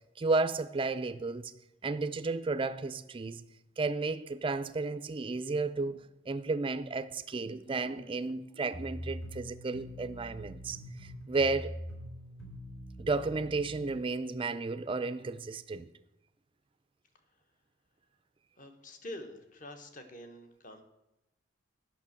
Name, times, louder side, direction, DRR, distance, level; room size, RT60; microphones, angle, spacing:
voice 1, 0.2-1.5 1.8-3.4 3.8-11.7 13.0-15.9, right 3 dB, 25° right, 0.4 m, -33 dB
sound 1, 8.7-14.0, equal, 70° left, 3.2 m, -44 dB
voice 2, 18.6-20.8, left 1 dB, 40° left, 1.0 m, -46 dB
10.5 x 5.8 x 7.3 m
head